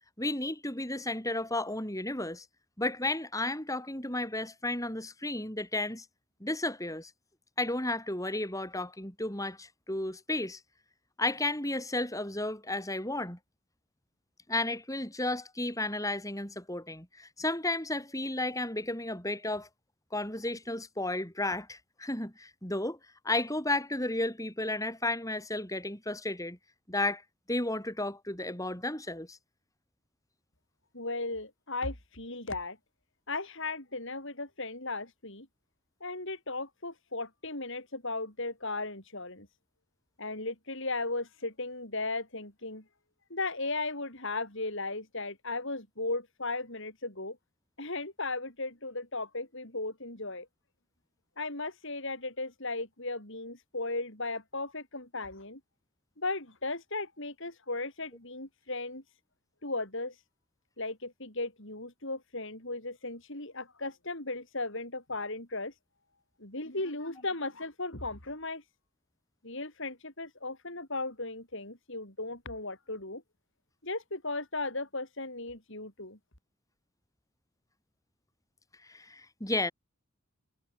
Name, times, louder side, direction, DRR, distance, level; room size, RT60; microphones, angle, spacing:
voice 1, 0.2-2.4 2.8-6.0 6.4-7.1 7.6-10.6 11.2-13.4 14.5-19.7 20.1-23.0 23.2-26.6 26.9-27.2 27.5-29.4 78.9-79.7, left 2 dB, 15° left, 6.5 m, -33 dB
voice 2, 30.9-32.8 33.3-35.5 36.0-39.5 40.2-42.8 43.3-47.4 47.8-50.5 51.4-55.6 56.2-59.0 59.6-60.1 60.8-65.7 66.4-68.6 69.4-73.2 73.8-76.2, left 2 dB, 55° left, 6.3 m, -36 dB
head